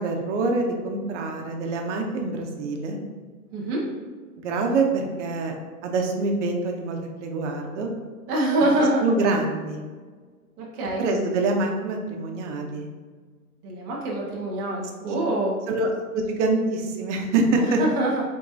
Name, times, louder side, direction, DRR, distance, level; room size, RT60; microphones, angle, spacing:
voice 1, 0.0-3.0 4.4-5.5 5.8-7.9 9.0-9.8 11.0-12.9 15.0-15.2 15.7-17.8, right 3 dB, 50° right, 3 dB, 0.8 m, -25 dB
voice 2, 3.5-3.9 8.3-9.0 10.6-11.0 13.6-15.5 17.6-18.2, right 1 dB, 20° right, -4 dB, 0.5 m, -25 dB
4.5 x 3.6 x 2.6 m, 1.5 s
hypercardioid pair, 135°, 45 cm